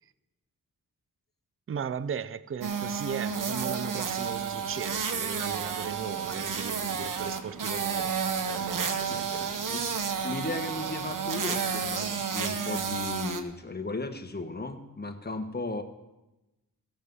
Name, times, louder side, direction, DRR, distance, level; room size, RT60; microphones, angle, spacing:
voice 1, 1.7-8.2 8.4-9.7, right 7 dB, 40° right, 0.5 m, -37 dB
sound 1, 2.6-13.4, right 6 dB, 60° right, 1.1 m, -31 dB
voice 2, 10.2-15.8, left 2 dB, 25° left, 1.4 m, -35 dB
15.0 x 7.9 x 5.5 m
cardioid pair, 65°, 36 cm